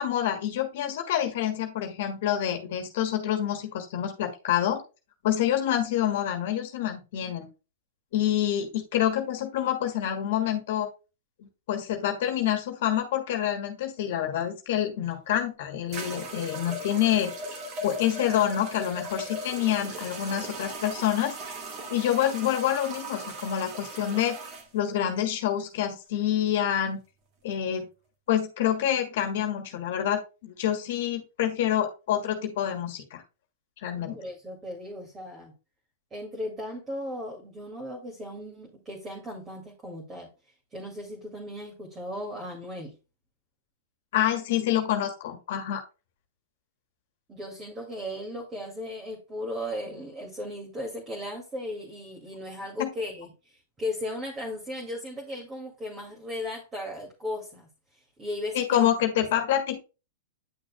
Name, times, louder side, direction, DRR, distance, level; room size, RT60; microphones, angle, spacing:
voice 1, 0.0-4.8 5.2-7.5 8.1-10.9 11.7-17.3 17.8-21.6 21.9-24.4 24.7-27.0 27.4-27.9 28.3-33.2 33.8-34.1 44.1-45.8 52.8-52.9 58.5-59.8, left 11 dB, 60° left, 5 dB, 1.5 m, -27 dB
sound 1, 15.1-15.2 15.9-24.7, right 1 dB, 40° right, 2.2 m, -38 dB
voice 2, 34.1-35.5 36.1-40.3 40.7-43.0 47.3-58.9, left 1 dB, 20° right, -1 dB, 2.1 m, -36 dB
9.3 x 6.3 x 2.2 m, 0.30 s
hypercardioid pair, 125°, 0 cm